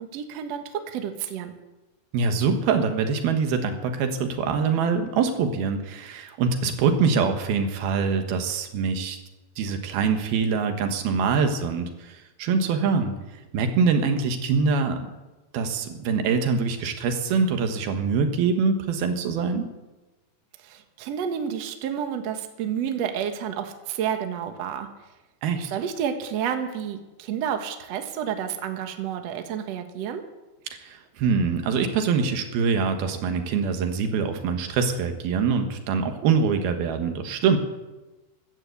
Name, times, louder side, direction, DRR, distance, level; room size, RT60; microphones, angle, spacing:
voice 1, 0.0-1.5 20.6-24.9 25.7-30.2, right 8 dB, 55° right, 6 dB, 2.0 m, -30 dB
voice 2, 2.1-9.2 9.6-13.1 13.5-15.1 15.5-19.7 25.4-25.7 30.7-37.6, right 5 dB, 80° right, 6 dB, 3.3 m, -24 dB
14.0 x 12.0 x 8.3 m, 1.1 s
omnidirectional pair, 4.4 m